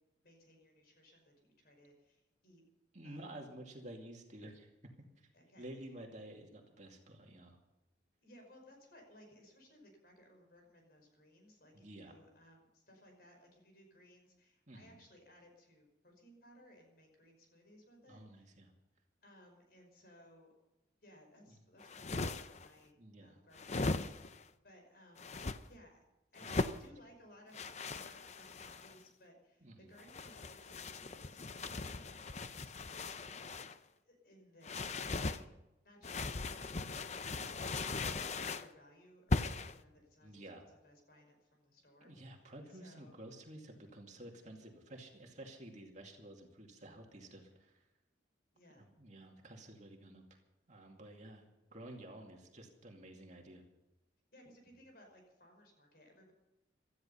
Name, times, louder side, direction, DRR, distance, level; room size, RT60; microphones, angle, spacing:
voice 1, 0.2-2.6 3.0-3.3 5.3-5.9 8.2-18.6 19.2-20.5 21.0-22.9 23.2-25.4 25.7-26.0 26.3-26.5 26.8-33.3 34.0-34.7 35.0-35.6 35.8-38.0 38.4-42.3 42.7-43.2 48.5-48.9 54.3-56.3, equal, 55° left, 3 dB, 5.5 m, -62 dB
voice 2, 2.9-4.7 5.0-5.3 5.6-7.6 11.7-12.2 14.7-14.9 18.1-18.7 21.5-21.6 23.0-23.4 26.4-26.7 29.6-29.9 37.4-37.6 40.2-40.7 42.0-47.8 48.8-50.4 50.7-51.4 51.7-53.6, right 1 dB, 40° right, 2 dB, 2.4 m, -52 dB
sound 1, 21.8-22.7 23.5-24.4 25.2-25.6 26.4-26.8 27.5-29.0 30.0-33.8 34.6-35.4 36.0-38.7 39.3-39.8, left 3 dB, 35° left, 0.7 m, -39 dB
17.5 x 13.0 x 5.6 m, 0.99 s
head